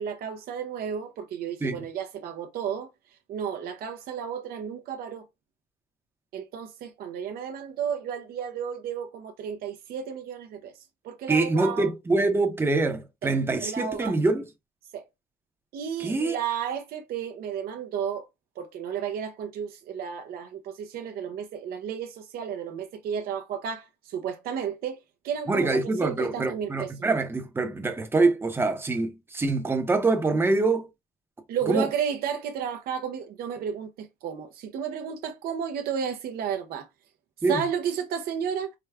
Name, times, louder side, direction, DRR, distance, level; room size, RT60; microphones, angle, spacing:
voice 1, 0.0-2.9 3.3-5.2 6.3-10.7 11.0-11.9 13.2-13.3 13.6-14.2 14.9-15.1 15.7-18.3 18.6-25.0 25.2-26.9 31.5-36.9 37.5-38.7, right 8 dB, 70° right, 0.6 m, -32 dB
voice 2, 11.3-14.5 16.0-16.4 25.5-30.9 31.7-31.9 37.4-37.6, right 3 dB, 15° right, 0.7 m, -25 dB
4.7 x 2.2 x 3.4 m
cardioid pair, 150°, 16 cm